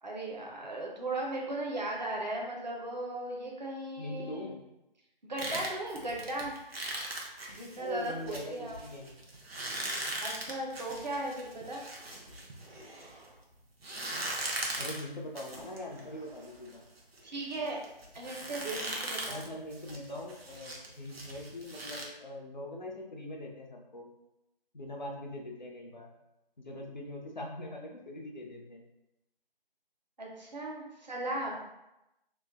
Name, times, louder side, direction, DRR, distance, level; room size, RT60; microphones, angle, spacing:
voice 1, 0.0-4.5 5.2-6.5 7.5-8.8 10.2-11.9 17.2-17.9 18.1-19.5 30.2-31.6, right 2 dB, 45° right, -2 dB, 0.6 m, -37 dB
voice 2, 4.0-4.6 7.7-9.2 14.7-16.8 19.3-24.1 24.7-26.1 26.6-28.8, left 1 dB, 50° left, 0 dB, 0.6 m, -42 dB
sound 1, 5.4-13.3 13.8-22.1, right 1 dB, 85° right, 0.8 m, -40 dB
3.1 x 2.0 x 3.4 m, 0.91 s
figure-of-eight pair, 175°, 30 cm